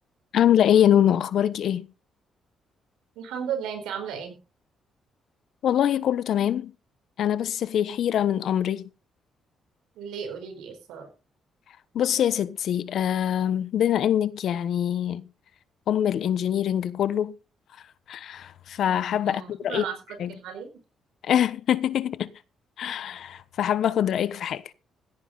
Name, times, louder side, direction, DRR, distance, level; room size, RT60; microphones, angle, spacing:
voice 1, 0.3-1.9 5.6-6.7 7.2-8.8 11.9-15.3 15.9-17.3 18.1-19.8 20.2-20.3 21.2-22.3 22.8-24.6, left 10 dB, 70° left, 1.1 m, -24 dB
voice 2, 3.1-4.4 9.9-11.1 19.2-20.0 20.3-20.7, right 7 dB, 90° right, 4.6 m, -34 dB
16.5 x 9.9 x 4.0 m
cardioid pair, 90°, 0 cm